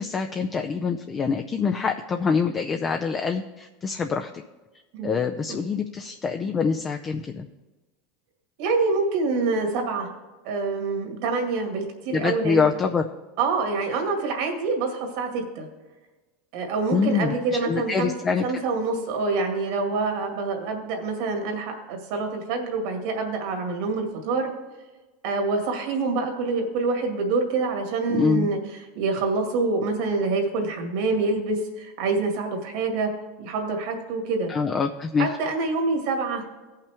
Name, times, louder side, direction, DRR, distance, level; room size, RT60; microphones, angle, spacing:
voice 1, 0.0-4.3 5.0-7.5 12.1-13.0 16.9-18.5 28.1-28.5 34.5-35.3, left 5 dB, 25° left, 4 dB, 0.5 m, -25 dB
voice 2, 8.6-10.1 10.4-12.7 13.4-15.7 16.5-18.1 18.4-24.5 25.2-28.6 28.9-33.1 33.4-34.5 35.2-36.4, right 3 dB, 70° right, 3 dB, 2.1 m, -26 dB
17.0 x 5.7 x 3.5 m, 1.2 s
supercardioid pair, 120°, 0 cm